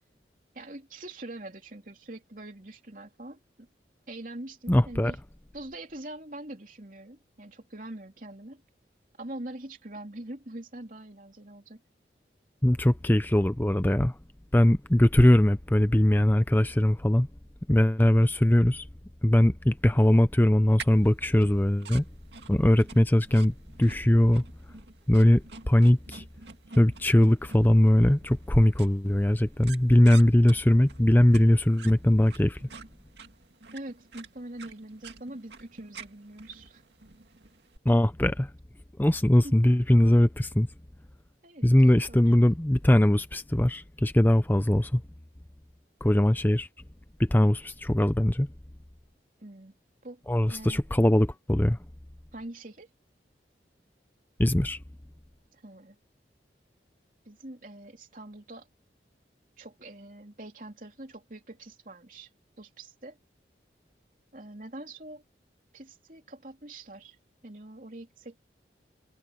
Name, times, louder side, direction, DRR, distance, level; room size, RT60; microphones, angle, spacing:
voice 1, 0.5-3.7 4.1-5.2 5.5-8.6 9.2-11.8 33.7-36.8 39.4-39.6 41.4-42.3 49.4-49.7 50.0-50.2 50.5-50.8 52.3-52.9 55.5-56.0 57.3-58.7 59.6-62.3 62.6-63.2 64.3-65.2 65.7-67.2 67.4-68.4, right 1 dB, 50° right, 3.4 m, -43 dB
voice 2, 4.7-5.1 12.6-14.2 14.5-17.3 17.7-18.9 19.2-22.1 22.5-24.4 25.1-26.2 26.8-32.6 37.9-38.5 39.0-40.7 41.6-45.0 46.0-46.7 47.2-48.5 50.3-51.8 54.4-54.8, left 1 dB, 10° left, 0.5 m, -21 dB
sound 1, 20.8-37.8, right 5 dB, 80° right, 2.2 m, -48 dB
head